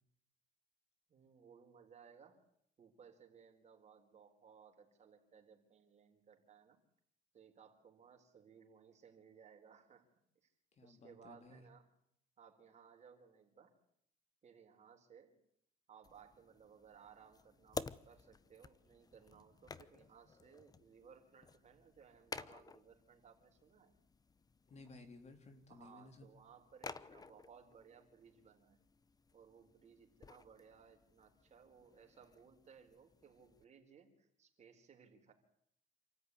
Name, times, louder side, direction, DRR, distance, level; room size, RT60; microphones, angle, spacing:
voice 1, 1.1-2.4 2.8-6.8 7.3-10.0 10.4-10.5 10.8-11.8 12.4-13.7 14.4-15.3 15.9-23.9 25.7-28.8 29.3-35.3, right 7 dB, 40° right, 3 dB, 4.6 m, -62 dB
voice 2, 10.7-11.6 24.7-26.3, left 3 dB, 40° left, 7 dB, 3.6 m, -57 dB
sound 1, 16.0-33.6, left 4 dB, 20° left, 0.8 m, -53 dB
28.0 x 13.5 x 9.8 m, 0.73 s
cardioid pair, 110°, 17 cm